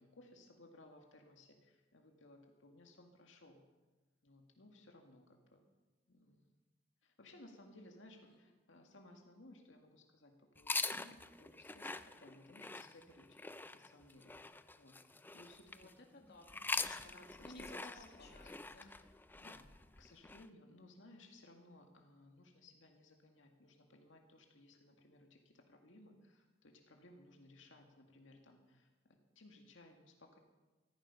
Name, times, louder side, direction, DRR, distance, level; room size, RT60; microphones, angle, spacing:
voice 1, 0.0-3.7 4.2-5.7 6.1-6.5 7.0-13.4 13.7-15.0 15.3-15.9 16.9-18.5 18.8-19.7 20.0-30.4, left 2 dB, 85° left, 3 dB, 2.0 m, -61 dB
sound 1, 10.6-15.9 16.4-20.5, left 3 dB, 10° left, 0.4 m, -44 dB
voice 2, 15.7-17.1 17.4-18.9, left 2 dB, 60° left, 2 dB, 2.1 m, -57 dB
15.0 x 14.5 x 5.6 m, 1.2 s
head